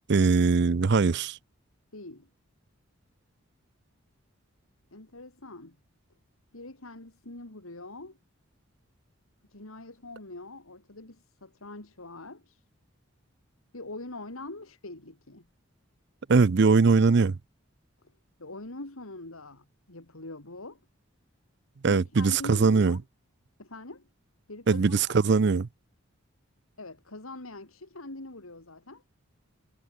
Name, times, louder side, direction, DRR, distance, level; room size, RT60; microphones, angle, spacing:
voice 1, 0.1-1.4 16.3-17.4 21.8-23.0 24.7-25.7, right 4 dB, 55° right, 0.5 m, -21 dB
voice 2, 1.9-2.3 4.9-5.8 6.5-8.2 9.5-12.6 13.7-15.5 18.0-18.1 18.4-20.8 21.9-23.0 23.6-24.1 24.5-25.2 26.8-29.0, left 2 dB, 90° left, 3.0 m, -43 dB
head